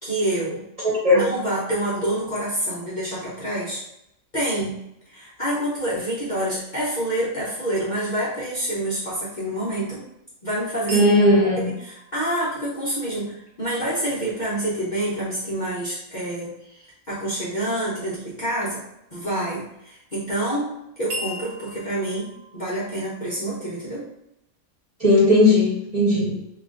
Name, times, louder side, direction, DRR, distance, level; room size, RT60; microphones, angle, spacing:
voice 1, 0.0-0.7 1.1-3.8 4.3-4.8 5.1-10.0 10.4-11.0 11.6-18.8 19.1-20.7 21.0-24.1, right 1 dB, 40° left, -8 dB, 0.8 m, -27 dB
voice 2, 0.8-1.3 10.9-11.7 25.0-26.4, left 1 dB, 30° right, -7 dB, 1.1 m, -17 dB
sound 1, 10.9-14.9 21.1-23.9, left 1 dB, 80° right, 1.4 m, -40 dB
3.1 x 2.4 x 3.6 m, 0.83 s
omnidirectional pair, 1.4 m